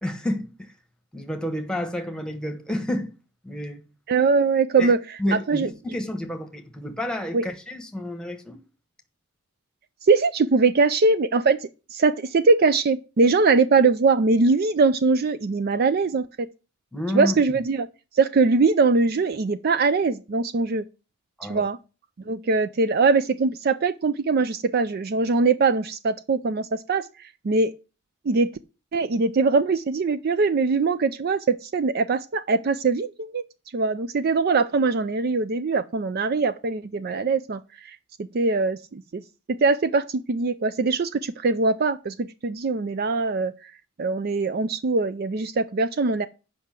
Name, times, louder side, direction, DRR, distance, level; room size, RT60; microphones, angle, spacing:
voice 1, 0.0-0.7 1.1-3.1 3.4-3.8 4.8-4.9 5.2-8.6 16.9-17.3 21.4-21.7, left 1 dB, 5° left, 1.2 m, -30 dB
voice 2, 4.1-5.7 7.3-7.5 10.0-16.5 17.1-17.9 18.1-20.8 21.5-21.8 22.3-27.7 28.3-28.5 28.9-33.4 33.7-39.2 39.5-43.7 44.0-46.3, right 4 dB, 45° right, 0.4 m, -22 dB
7.8 x 5.5 x 7.4 m
head